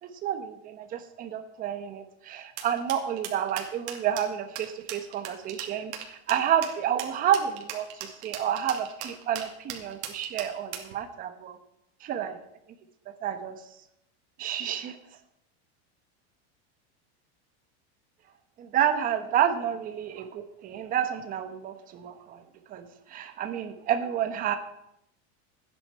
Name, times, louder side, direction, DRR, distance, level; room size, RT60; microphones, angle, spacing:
voice 1, 0.0-11.6 12.0-12.4 13.2-13.5 14.4-15.0 18.6-22.4 22.7-24.5, right 9 dB, 25° right, 8 dB, 1.1 m, -30 dB
sound 1, 2.6-10.9, right 10 dB, 75° right, 2.6 m, -38 dB
13.5 x 9.9 x 5.6 m, 0.80 s
supercardioid pair, 180°, 34 cm